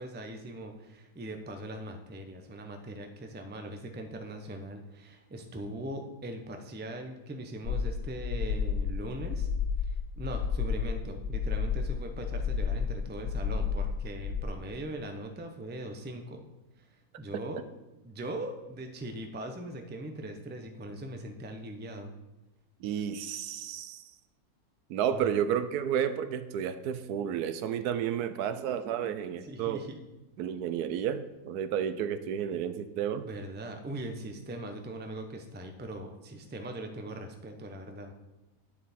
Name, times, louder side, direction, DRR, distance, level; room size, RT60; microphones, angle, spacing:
voice 1, 0.0-9.5 9.8-16.4 17.2-17.6 18.0-22.1 25.1-25.3 29.4-30.0 33.2-38.1, right 1 dB, 15° right, 5 dB, 0.4 m, -40 dB
sound 1, 7.6-14.4, left 6 dB, 55° left, 0.7 m, -31 dB
voice 2, 22.8-24.1 24.9-29.8 30.4-33.2, right 9 dB, 80° right, 11 dB, 1.1 m, -31 dB
9.2 x 7.3 x 4.2 m, 1.0 s
omnidirectional pair, 1.7 m